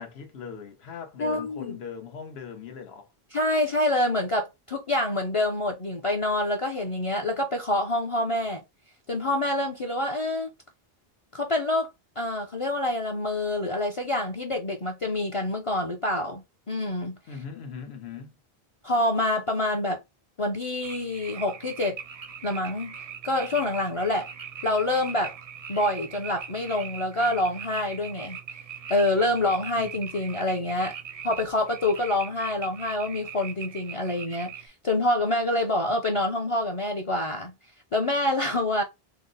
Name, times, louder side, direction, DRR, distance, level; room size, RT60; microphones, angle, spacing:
voice 1, 0.0-3.1 17.3-18.4 29.8-30.0, left 6 dB, 85° left, 1.1 m, -39 dB
voice 2, 1.2-1.8 3.3-8.6 9.1-10.5 11.3-17.2 18.8-20.0 20.4-22.0 22.4-22.9 23.2-24.3 24.6-25.3 25.7-28.4 28.9-30.9 31.2-37.5 37.9-38.8, left 1 dB, 40° left, 0.5 m, -26 dB
sound 1, 20.8-34.7, right 8 dB, 50° right, 0.5 m, -41 dB
3.9 x 2.1 x 3.9 m
omnidirectional pair, 1.0 m